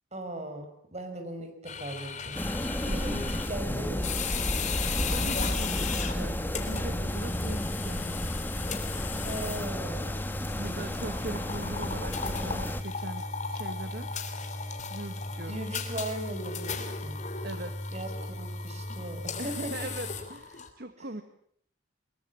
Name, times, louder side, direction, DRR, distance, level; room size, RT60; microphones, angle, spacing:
voice 1, 0.1-2.4 3.0-4.3 9.2-10.1 10.6-10.9 15.5-17.2 17.9-19.7, right 1 dB, 35° right, 7 dB, 5.5 m, -39 dB
sound 1, 1.7-20.7, left 4 dB, 40° left, 3.3 m, -36 dB
sound 2, 2.3-12.8, left 1 dB, 10° left, 1.6 m, -32 dB
voice 2, 5.1-8.3 10.6-14.1 14.9-15.6 17.4-17.9 19.4-21.2, right 2 dB, 55° right, 9 dB, 1.6 m, -40 dB
23.5 x 22.0 x 8.5 m, 0.64 s
head